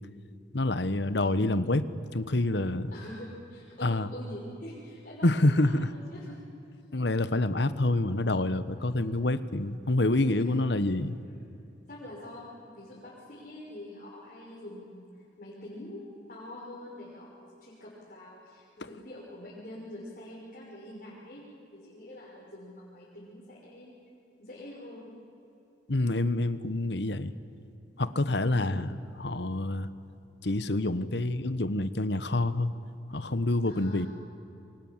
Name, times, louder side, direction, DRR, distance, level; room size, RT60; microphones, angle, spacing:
voice 1, 0.5-1.9 2.1-2.9 3.8-4.1 5.2-5.9 6.9-11.2 25.9-27.3 28.0-28.9 29.2-29.9 30.4-32.7 33.1-34.1, left 2 dB, 70° left, 13 dB, 1.2 m, -27 dB
voice 2, 2.9-6.4 8.7-9.1 10.0-10.7 11.9-15.1 15.4-21.4 21.7-24.0 24.4-25.1 28.5-28.8 33.7-34.1, left 1 dB, 50° left, -6 dB, 5.6 m, -45 dB
28.5 x 24.5 x 7.5 m, 2.8 s
head